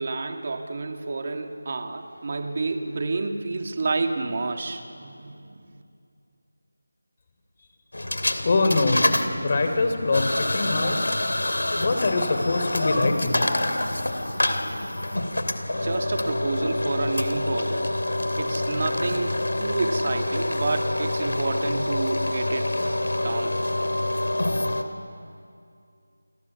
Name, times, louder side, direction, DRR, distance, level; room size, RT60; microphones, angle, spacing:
voice 1, 0.0-5.7 15.8-17.9 18.4-22.7 23.2-23.5, right 3 dB, 40° right, 5 dB, 2.1 m, -29 dB
sound 1, 7.9-24.8, left 1 dB, 80° left, 2.8 m, -26 dB
voice 2, 8.4-9.1 9.4-11.0 11.8-13.4, left 3 dB, 35° left, 6 dB, 3.3 m, -23 dB
28.5 x 24.0 x 7.1 m, 2.4 s
figure-of-eight pair, 170°, 0 cm